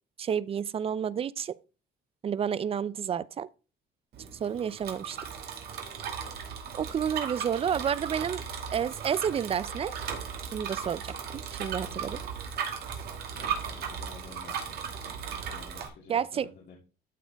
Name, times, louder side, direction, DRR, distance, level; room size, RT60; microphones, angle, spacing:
voice 1, 0.2-1.5 2.2-3.5 4.4-5.2 6.7-8.4 8.7-10.0 10.5-11.1 11.5-12.2 16.1-16.5, right 8 dB, 35° right, 0.4 m, -30 dB
Bicycle, 4.1-15.9, right 7 dB, 70° right, 2.2 m, -37 dB
voice 2, 13.3-14.8 15.4-16.8, left 5 dB, 60° left, 2.0 m, -50 dB
12.5 x 4.3 x 4.6 m
cardioid pair, 110°, 17 cm